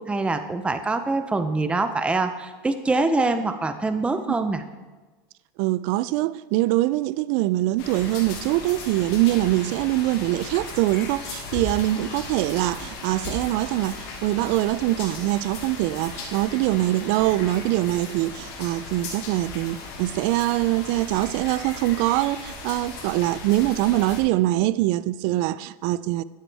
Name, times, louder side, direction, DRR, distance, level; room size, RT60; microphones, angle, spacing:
voice 1, 0.0-4.6, right 3 dB, 10° right, 0.6 m, -24 dB
voice 2, 5.6-26.2, right 16 dB, 55° right, 0.4 m, -23 dB
sound 1, 7.8-24.2, left 3 dB, 50° left, 2.9 m, -37 dB
12.0 x 8.9 x 3.4 m
supercardioid pair, 120°, 13 cm